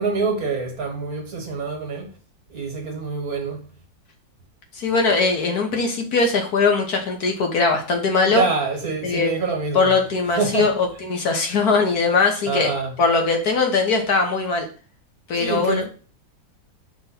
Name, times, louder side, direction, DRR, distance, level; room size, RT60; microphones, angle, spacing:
voice 1, 0.0-2.1 2.5-3.7 8.3-9.9 10.3-10.7 12.5-12.9 15.4-15.8, right 4 dB, 50° right, 1.9 m, -25 dB
voice 2, 4.7-8.4 9.0-9.3 9.7-12.7 13.0-14.7 15.3-15.8, left 4 dB, 60° left, 1.4 m, -20 dB
5.4 x 3.6 x 5.8 m
omnidirectional pair, 2.0 m